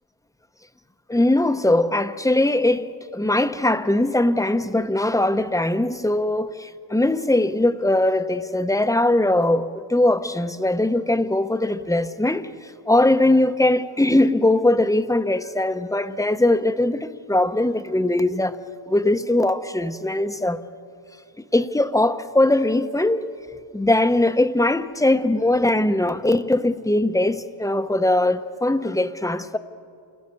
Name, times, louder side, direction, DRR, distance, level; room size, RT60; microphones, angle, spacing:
voice 1, 1.1-12.5 12.9-18.6 18.9-20.6 21.5-23.2 23.7-29.6, left 1 dB, 5° left, 0.9 m, -20 dB
29.0 x 22.0 x 7.0 m
wide cardioid pair, 100°, 50 cm